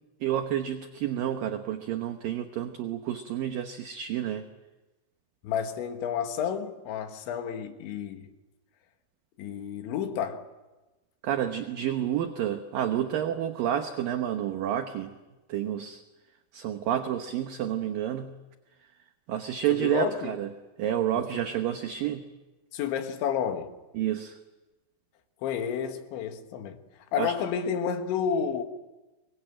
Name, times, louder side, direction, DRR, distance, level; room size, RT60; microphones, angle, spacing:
voice 1, 0.2-4.4 11.2-15.1 15.5-16.0 16.5-18.3 19.3-20.5 20.8-22.2 23.9-24.4 27.2-27.3, right 11 dB, 70° right, 2.3 m, -29 dB
voice 2, 5.4-8.3 9.4-10.5 19.7-20.4 21.1-21.4 22.7-23.8 25.4-26.8 27.1-28.6, left 7 dB, 90° left, 3.9 m, -31 dB
24.5 x 22.0 x 9.1 m
omnidirectional pair, 5.1 m